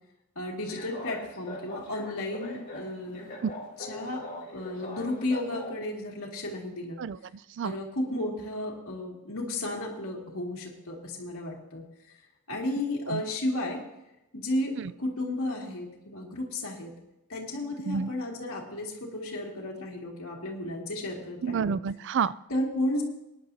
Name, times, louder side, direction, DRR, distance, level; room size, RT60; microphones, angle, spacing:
voice 1, 0.4-3.2 3.9-4.2 4.5-7.0 7.6-11.8 12.5-13.8 14.3-16.9 17.3-21.7 22.5-23.0, left 1 dB, 65° left, -3 dB, 2.4 m, -33 dB
sound 1, 0.6-5.7, left 1 dB, 35° left, 2.4 m, -41 dB
voice 2, 7.0-7.8 13.1-13.2 14.8-14.9 17.8-18.1 21.4-22.3, right 6 dB, 55° right, 18 dB, 0.4 m, -30 dB
19.5 x 10.5 x 2.8 m, 0.88 s
head